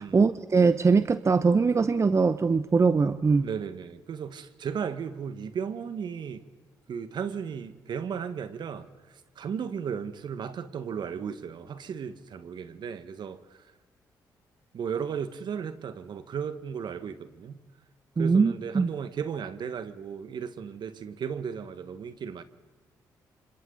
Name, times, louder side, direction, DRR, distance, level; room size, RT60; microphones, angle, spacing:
voice 1, 0.0-3.5 18.2-18.9, right 4 dB, 35° right, 0.8 m, -22 dB
voice 2, 3.4-6.4 6.9-8.9 9.4-13.4 14.7-17.6 18.2-22.4, right 7 dB, 65° right, 1.6 m, -35 dB
29.0 x 26.0 x 4.0 m
supercardioid pair, 60°, 8 cm